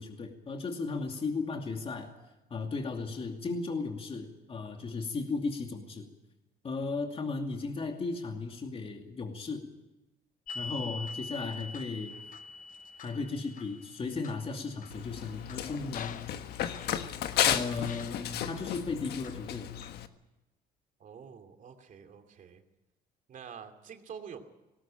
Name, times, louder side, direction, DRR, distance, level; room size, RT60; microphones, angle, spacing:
voice 1, 0.0-2.1 2.5-6.1 6.6-9.7 10.5-12.2 13.0-16.3 17.5-19.7, left 4 dB, 35° left, 3 dB, 2.5 m, -35 dB
sound 1, 10.5-17.4 17.8-18.7 19.2-20.0, left 4 dB, 55° left, 1.0 m, -45 dB
Run, 14.9-20.1, left 10 dB, 70° left, 1.4 m, -33 dB
voice 2, 21.0-22.6 23.3-24.4, right 7 dB, 50° right, 6 dB, 2.7 m, -47 dB
19.0 x 18.5 x 8.9 m, 1.0 s
cardioid pair, 110°, 17 cm